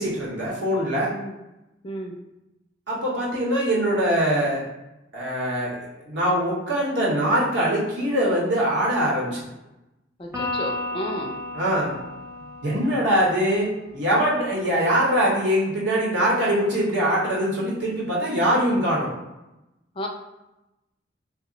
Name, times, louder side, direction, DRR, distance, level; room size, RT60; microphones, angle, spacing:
voice 1, 0.0-1.1 2.9-4.7 5.1-9.4 11.5-11.9 12.6-19.1, equal, 70° right, -5 dB, 0.9 m, -23 dB
voice 2, 1.8-2.2 10.2-11.4 19.9-20.1, equal, 30° left, 2 dB, 0.4 m, -32 dB
Electric guitar, 10.3-13.9, left 1 dB, 15° right, 0.7 m, -33 dB
2.3 x 2.0 x 3.7 m, 0.95 s
head